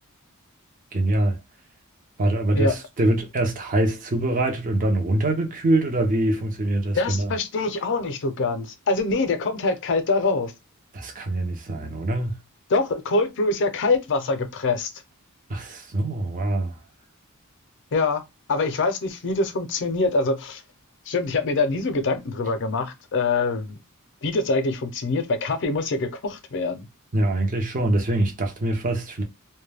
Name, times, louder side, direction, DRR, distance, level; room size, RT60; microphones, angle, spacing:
voice 1, 0.9-1.4 2.2-7.3 10.9-12.4 15.5-16.7 27.1-29.2, right 1 dB, 40° right, 0.6 m, -24 dB
voice 2, 6.9-10.5 12.7-14.9 17.9-18.2 18.5-20.6 21.1-23.8 24.2-26.9, left 3 dB, 55° left, 0.5 m, -24 dB
2.2 x 2.2 x 3.3 m
head